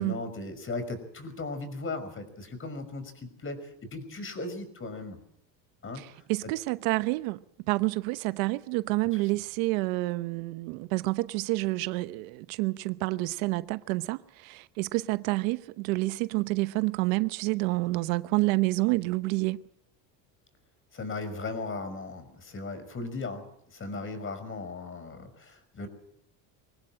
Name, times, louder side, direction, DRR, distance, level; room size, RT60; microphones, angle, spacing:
voice 1, 0.0-5.2 5.8-6.1 9.1-9.2 20.9-25.9, left 3 dB, 30° left, 5.8 m, -37 dB
voice 2, 5.9-7.4 7.7-19.6, right 21 dB, 85° right, 1.0 m, -28 dB
24.0 x 18.0 x 7.6 m
supercardioid pair, 105°, 40 cm